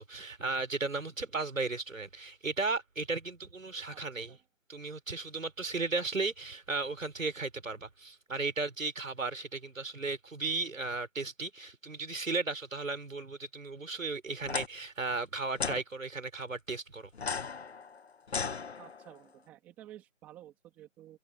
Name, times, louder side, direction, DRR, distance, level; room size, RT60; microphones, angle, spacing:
voice 1, 0.0-4.4 4.7-17.1, right 3 dB, 80° right, 5.3 m, -35 dB
voice 2, 3.9-4.4 18.8-21.2, right 13 dB, 5° right, 3.1 m, -53 dB
sound 1, 14.4-14.7 15.6-15.8 17.1-19.2, left 5 dB, 55° left, 0.7 m, -36 dB
hypercardioid pair, 180°, 39 cm